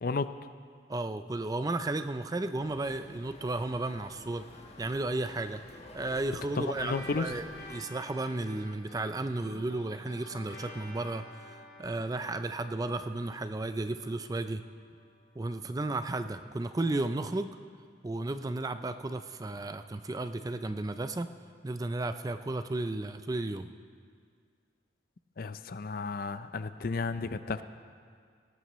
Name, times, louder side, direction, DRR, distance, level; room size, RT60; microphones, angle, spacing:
voice 1, 0.0-0.4 6.6-7.3 25.4-27.6, left 4 dB, 55° left, 12 dB, 0.5 m, -33 dB
voice 2, 0.9-4.4 4.8-14.6 15.4-17.6 18.0-21.3 21.6-23.7, right 2 dB, 20° right, 10 dB, 0.4 m, -34 dB
sound 1, 2.6-7.8, left 1 dB, 35° left, 1.3 m, -51 dB
sound 2, 6.7-15.5, left 1 dB, 85° left, 3.5 m, -50 dB
18.0 x 17.5 x 3.1 m, 2.1 s
head